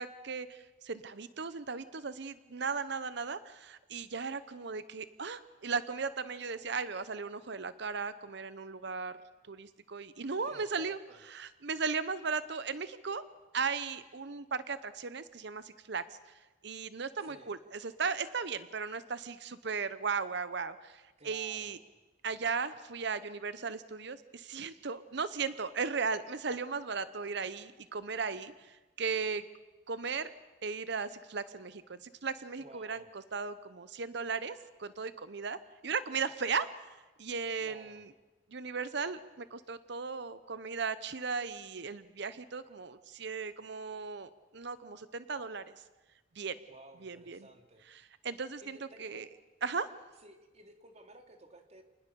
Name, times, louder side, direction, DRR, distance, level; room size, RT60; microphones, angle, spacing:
voice 1, 0.0-9.1 9.5-11.0 11.3-13.2 13.5-21.8 22.2-29.4 29.9-30.3 30.6-38.1 38.5-45.7 46.3-46.6 47.0-47.5 47.9-49.3 49.6-49.9, right 5 dB, 65° right, 14 dB, 0.8 m, -37 dB
voice 2, 10.4-11.2 17.2-17.5 21.2-21.7 32.6-33.1 37.6-38.0 46.7-47.9 48.6-49.2 50.2-51.8, right 1 dB, 35° right, 5 dB, 2.5 m, -54 dB
29.0 x 20.0 x 7.0 m, 1.2 s
head